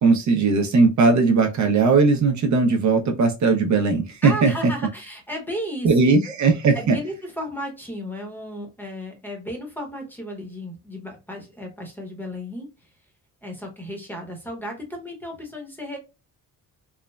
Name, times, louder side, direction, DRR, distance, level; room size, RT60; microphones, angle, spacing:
voice 1, 0.0-4.7 5.8-7.0, right 4 dB, 55° right, 3 dB, 0.5 m, -18 dB
voice 2, 4.2-6.4 6.7-12.7 13.4-16.0, equal, 5° left, 1 dB, 0.8 m, -34 dB
3.2 x 2.0 x 2.2 m, 0.28 s
cardioid pair, 125°, 35 cm